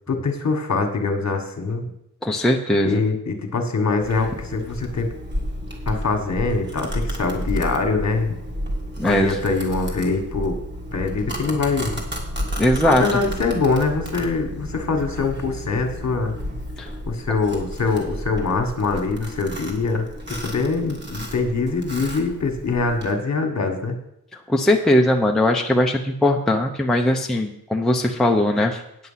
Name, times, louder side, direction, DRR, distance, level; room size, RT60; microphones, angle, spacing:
voice 1, 0.1-1.9 2.8-5.1 5.8-8.3 9.0-10.6 10.9-12.0 12.8-16.3 17.1-24.0, left 4 dB, 45° left, 5 dB, 1.6 m, -23 dB
voice 2, 2.2-3.0 9.0-9.4 12.6-13.0 16.8-16.9 24.5-28.8, left 1 dB, ahead, 2 dB, 0.6 m, -19 dB
Domestic sounds home sounds, 4.0-23.1, equal, 30° right, 2.0 m, -32 dB
9.5 x 7.7 x 5.7 m, 0.81 s
wide cardioid pair, 140°, 37 cm